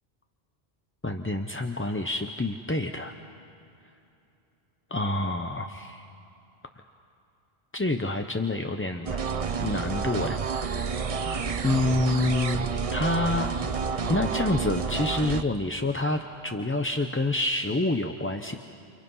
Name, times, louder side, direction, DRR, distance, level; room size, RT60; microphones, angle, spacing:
voice 1, 1.0-3.1 4.9-6.1 7.7-9.2 9.6-11.1 11.6-13.5 14.1-18.6, left 2 dB, 15° left, 5 dB, 0.6 m, -28 dB
sound 1, 9.1-15.4, right 5 dB, 40° right, 0.7 m, -29 dB
29.5 x 29.0 x 5.5 m, 2.9 s
omnidirectional pair, 1.1 m